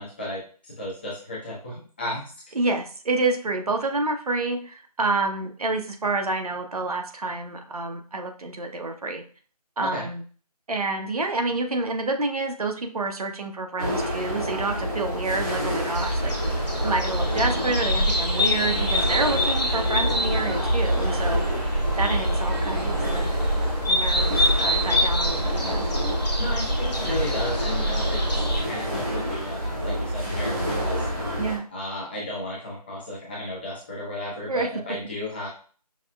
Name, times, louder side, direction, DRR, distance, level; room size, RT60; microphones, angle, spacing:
voice 1, 0.0-2.2 9.8-10.1 26.4-28.2 28.6-31.1 31.7-35.5, left 1 dB, 15° left, -6 dB, 0.7 m, -34 dB
voice 2, 2.5-9.2 9.8-10.2 10.7-16.3 16.8-21.4 22.0-23.4 23.9-25.8 31.4-31.6 34.5-34.7, right 3 dB, 65° right, 5 dB, 0.8 m, -28 dB
sound 1, 13.8-31.6, equal, 20° right, 1.1 m, -28 dB
sound 2, 15.9-28.6, equal, 85° left, 1.3 m, -26 dB
5.8 x 2.2 x 2.2 m, 0.41 s
figure-of-eight pair, 165°, 21 cm